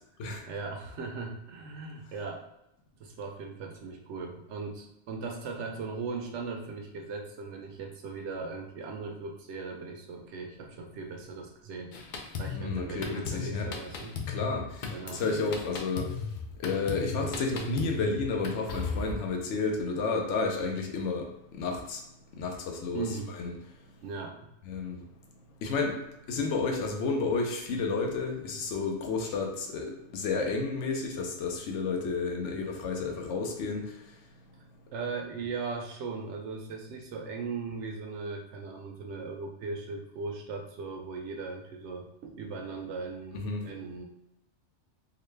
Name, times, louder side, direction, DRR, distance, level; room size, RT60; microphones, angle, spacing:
voice 1, 0.5-2.5 3.0-11.9 12.4-14.2 14.9-15.2 19.3-19.4 22.9-23.3 24.0-24.5 34.9-44.1, right 4 dB, 80° right, 2 dB, 0.9 m, -38 dB
Drum kit, 11.9-19.1, left 5 dB, 55° left, 0.6 m, -36 dB
voice 2, 12.5-13.7 14.3-16.2 16.6-22.0 22.4-23.5 24.6-25.0 25.6-26.0 26.3-34.0 43.3-43.7, left 4 dB, 85° left, 2 dB, 1.0 m, -31 dB
3.8 x 2.2 x 3.2 m, 0.86 s
omnidirectional pair, 1.2 m